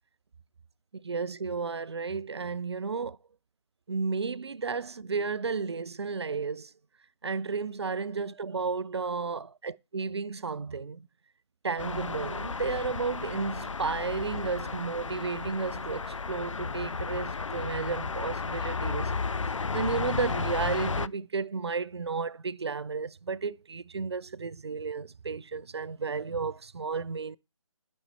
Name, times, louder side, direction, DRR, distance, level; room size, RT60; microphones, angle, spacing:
voice 1, 1.0-3.2 3.9-6.7 7.2-11.1 11.6-19.2 19.7-27.4, right 4 dB, 55° right, 0.4 m, -33 dB
sound 1, 11.8-21.1, left 4 dB, 75° left, 0.4 m, -33 dB
10.5 x 5.4 x 4.4 m
figure-of-eight pair, 150°, 16 cm